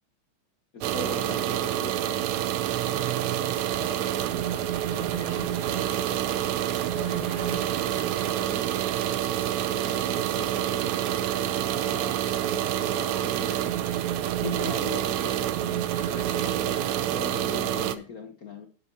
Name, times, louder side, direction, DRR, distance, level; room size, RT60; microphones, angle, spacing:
voice 1, 0.7-2.4 9.7-11.1 11.9-12.1 12.7-13.8 14.4-18.7, left 5 dB, 70° left, 0.8 m, -40 dB
sound 1, 0.8-18.0, right 11 dB, 75° right, 1.9 m, -27 dB
sound 2, 2.6-17.0, right 3 dB, 55° right, 3.2 m, -49 dB
voice 2, 2.9-8.7 11.4-12.0 15.9-17.4, left 1 dB, 5° right, 0.8 m, -45 dB
11.0 x 6.9 x 4.5 m
omnidirectional pair, 3.4 m